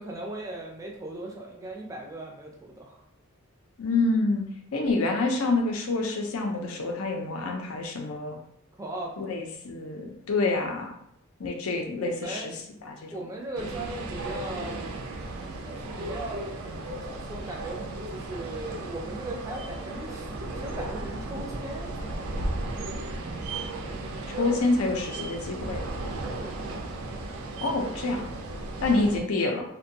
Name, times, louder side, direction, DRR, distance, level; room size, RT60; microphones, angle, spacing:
voice 1, 0.0-3.0 8.8-9.3 12.0-12.5 13.1-14.8 15.7-22.6 26.4-26.7, right 1 dB, 15° right, -1 dB, 0.4 m, -38 dB
voice 2, 3.8-8.4 9.2-10.9 11.4-13.2 24.4-25.8 27.6-28.3 28.8-29.6, left 3 dB, 80° left, 2 dB, 0.5 m, -27 dB
sound 1, 13.5-29.2, right 2 dB, 80° right, 0.4 m, -35 dB
2.6 x 2.2 x 2.6 m, 0.71 s
head